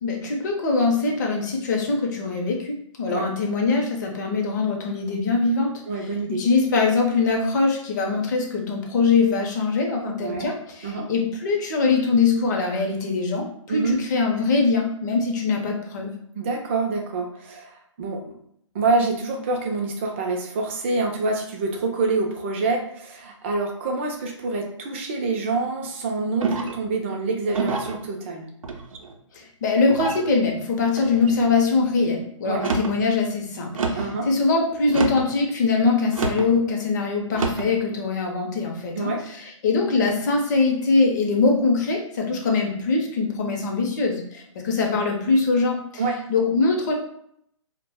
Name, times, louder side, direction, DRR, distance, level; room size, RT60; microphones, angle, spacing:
voice 1, 0.0-5.7 6.4-16.1 29.3-39.1 39.6-45.8 46.3-46.9, left 4 dB, 35° left, 1 dB, 0.5 m, -22 dB
voice 2, 5.9-6.4 10.2-10.5 10.8-11.1 13.7-14.0 16.3-18.2 18.7-28.5 32.5-32.6 34.0-34.3 39.0-39.2 46.0-46.2, right 3 dB, 25° right, 1 dB, 0.4 m, -26 dB
sound 1, 26.4-26.9 27.5-28.0 28.6-29.2 29.9-30.3 30.9-31.4 32.5-33.0 33.7-34.1 34.9-35.3 36.1-36.5 37.3-37.7, right 3 dB, 85° right, 0.5 m, -27 dB
2.1 x 2.1 x 3.4 m, 0.70 s
hypercardioid pair, 155°, 17 cm